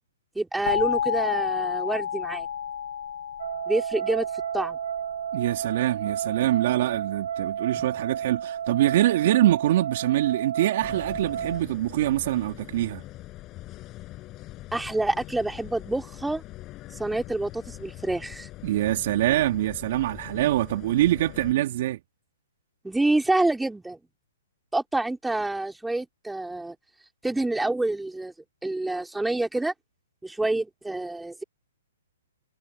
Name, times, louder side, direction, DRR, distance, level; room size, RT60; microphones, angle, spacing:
voice 1, 0.4-2.5 3.7-4.3 4.5-4.8 7.7-7.9 14.7-16.4 16.9-18.5 22.8-24.0 24.7-26.8 27.2-28.3 28.6-29.7 30.2-31.4, right 2 dB, 5° right, 4.0 m, -27 dB
sound 1, 0.7-5.4, left 9 dB, 65° left, 2.3 m, -31 dB
sound 2, 3.4-11.6, right 9 dB, 65° right, 0.8 m, -32 dB
voice 2, 5.3-13.0 18.6-22.0, right 14 dB, 50° right, 2.5 m, -24 dB
sound 3, 10.8-21.5, left 17 dB, 25° left, 5.9 m, -43 dB
hypercardioid pair, 140°, 0 cm